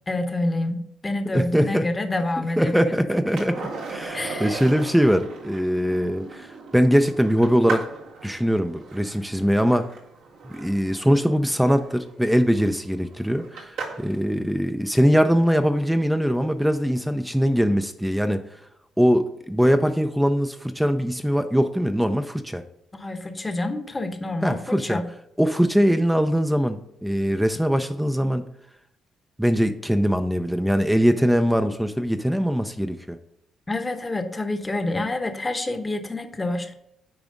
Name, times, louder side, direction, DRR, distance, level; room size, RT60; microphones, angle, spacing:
voice 1, 0.1-2.9 4.1-4.6 22.9-25.0 33.7-36.7, left 2 dB, 20° left, 7 dB, 1.0 m, -27 dB
voice 2, 1.3-1.9 2.6-7.9 8.2-9.9 10.4-18.4 19.0-22.6 24.4-25.0 25.4-28.5 29.4-33.2, equal, 5° right, 8 dB, 0.5 m, -22 dB
Skateboard, 3.4-14.2 16.8-16.9, right 4 dB, 85° right, 1.9 m, -38 dB
8.8 x 4.8 x 3.8 m, 0.77 s
cardioid pair, 90°, 0 cm